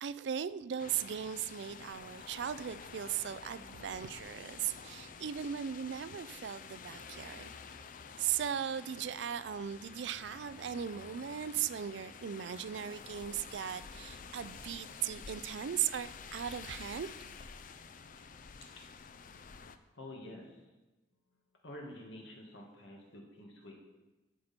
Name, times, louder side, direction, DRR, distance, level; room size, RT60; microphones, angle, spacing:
voice 1, 0.0-7.5 8.2-17.1, right 9 dB, 70° right, 15 dB, 0.4 m, -38 dB
sound 1, 0.8-19.8, left 5 dB, 45° left, 0.5 m, -50 dB
voice 2, 19.9-20.6 21.6-23.7, left 1 dB, 80° left, -1 dB, 2.1 m, -48 dB
12.5 x 5.8 x 4.4 m, 1.1 s
head